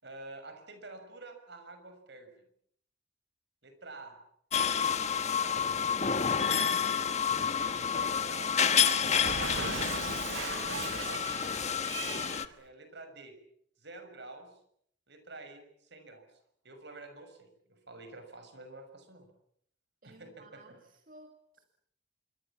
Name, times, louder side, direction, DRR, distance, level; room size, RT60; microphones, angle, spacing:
voice 1, 0.0-2.3 3.6-4.2 4.9-5.8 6.4-7.0 7.5-8.6 10.3-11.4 12.5-13.3 13.8-14.6 15.1-16.2 16.6-19.3 20.0-20.8, right 2 dB, 65° right, 8 dB, 6.3 m, -49 dB
sound 1, 4.5-12.5, left 7 dB, 35° left, 1.4 m, -29 dB
Cat, 9.2-12.5, right 5 dB, 85° right, 1.1 m, -38 dB
voice 2, 20.0-21.6, right 2 dB, 45° right, 6 dB, 2.1 m, -56 dB
26.5 x 24.0 x 7.4 m, 0.68 s
head